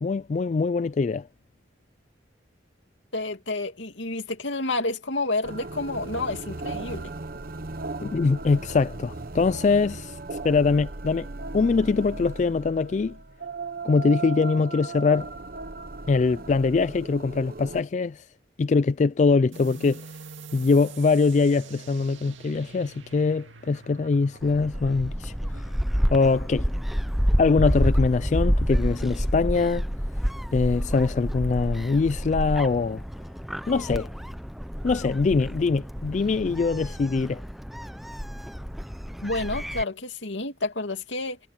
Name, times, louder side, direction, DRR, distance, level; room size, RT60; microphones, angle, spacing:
voice 1, 0.0-1.3 8.0-11.3 11.5-13.2 13.8-15.3 16.1-18.2 18.6-20.0 20.5-25.3 26.1-26.7 27.4-29.9 30.5-33.0 33.7-34.1 34.8-37.4, left 4 dB, 40° left, 0.3 m, -23 dB
voice 2, 3.1-7.1 39.2-41.4, left 2 dB, 80° left, 2.6 m, -29 dB
sound 1, 5.4-17.8, right 3 dB, 50° right, 1.0 m, -37 dB
sound 2, 19.5-26.8, right 4 dB, 90° right, 2.1 m, -45 dB
Gull seagull, 24.4-39.8, equal, ahead, 0.7 m, -29 dB
head